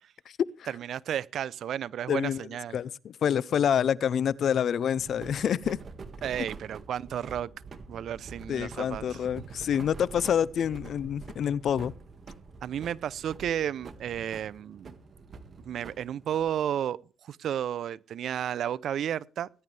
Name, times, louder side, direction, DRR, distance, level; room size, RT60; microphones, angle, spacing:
voice 1, 0.7-2.8 6.2-7.5 7.9-9.2 12.6-14.9 15.6-19.5, right 10 dB, 70° right, 0.6 m, -32 dB
voice 2, 2.1-2.4 2.7-5.8 8.5-11.9, left 8 dB, 60° left, 0.6 m, -27 dB
sound 1, 5.0-16.8, right 4 dB, 45° right, 1.9 m, -46 dB
19.5 x 11.0 x 3.4 m
cardioid pair, 90°, 0 cm